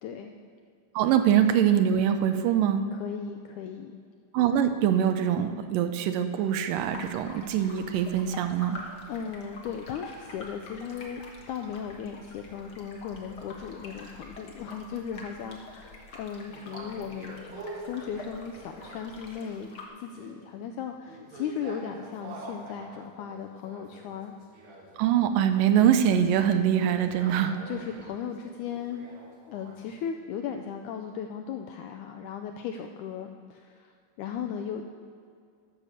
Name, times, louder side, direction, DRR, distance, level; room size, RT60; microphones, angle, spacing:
voice 1, 0.0-0.3 2.9-4.0 9.1-17.4 17.8-19.7 20.0-24.3 27.7-29.1 29.5-33.9 34.2-34.8, left 7 dB, 85° left, 5 dB, 1.8 m, -37 dB
voice 2, 1.0-2.8 4.3-8.8 25.0-27.6, right 9 dB, 80° right, 9 dB, 2.2 m, -23 dB
sound 1, 6.8-19.9, left 2 dB, 55° left, 1.1 m, -46 dB
sound 2, 16.3-19.7 20.0-30.0, right 2 dB, 60° right, 2.4 m, -46 dB
13.0 x 6.8 x 6.4 m, 2.2 s
omnidirectional pair, 4.0 m